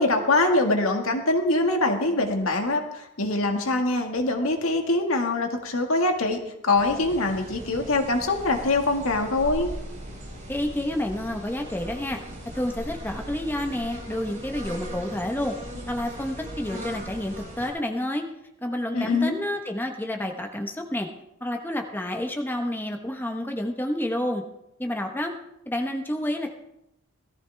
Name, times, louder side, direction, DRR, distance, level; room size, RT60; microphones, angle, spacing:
voice 1, 0.0-9.7 18.9-19.3, left 2 dB, 75° left, 3 dB, 2.0 m, -23 dB
sound 1, 6.8-17.7, equal, 35° right, 6.9 m, -39 dB
voice 2, 10.5-12.2 12.5-15.6 15.9-18.3 18.6-21.1 21.4-24.4 24.8-25.3 25.7-26.5, left 1 dB, 10° left, 3 dB, 1.1 m, -29 dB
17.5 x 14.0 x 3.5 m, 0.82 s
head